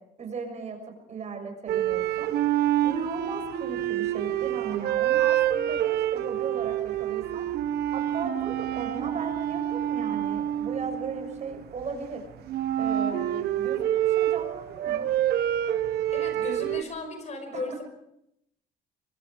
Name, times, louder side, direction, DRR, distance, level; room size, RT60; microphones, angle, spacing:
voice 1, 0.2-2.3 2.8-7.5 7.9-12.2 12.8-15.1 17.5-17.6, right 5 dB, 45° right, 5 dB, 6.5 m, -37 dB
sound 1, 1.7-11.8 12.5-16.8, right 12 dB, 70° right, 1.4 m, -27 dB
voice 2, 16.1-17.8, left 2 dB, 45° left, 7 dB, 5.6 m, -35 dB
24.0 x 23.5 x 4.9 m, 0.79 s
cardioid pair, 110°, 17 cm